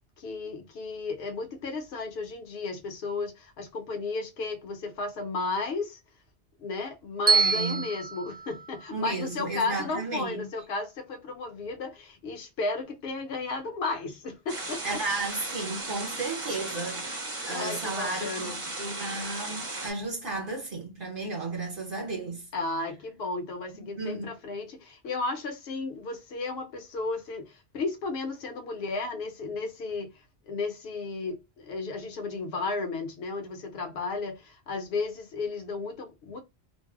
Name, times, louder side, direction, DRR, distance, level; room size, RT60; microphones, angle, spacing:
voice 1, 0.2-6.0 6.6-15.0 17.5-18.7 22.5-36.4, left 3 dB, 65° left, 0.9 m, -34 dB
Bell, 7.3-9.4, right 5 dB, 15° right, 0.4 m, -27 dB
voice 2, 7.3-7.9 8.9-10.5 14.8-17.1 17.4-22.5 24.0-24.3, right 3 dB, 55° right, 1.0 m, -33 dB
sound 1, 14.5-19.9, right 2 dB, 30° right, 0.8 m, -36 dB
2.6 x 2.0 x 3.5 m
omnidirectional pair, 1.2 m